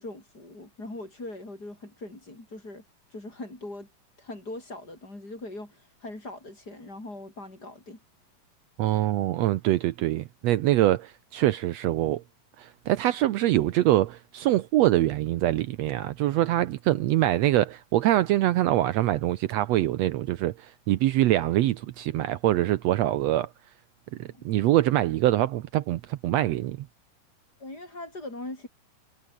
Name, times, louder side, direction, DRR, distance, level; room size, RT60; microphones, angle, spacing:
voice 1, 0.0-2.8 3.1-3.9 4.2-8.0 24.2-24.5 27.6-28.7, left 2 dB, 25° left, 7.8 m, -41 dB
voice 2, 8.8-12.2 12.6-23.5 24.2-26.9, right 14 dB, 90° right, 1.4 m, -24 dB
omnidirectional pair, 4.0 m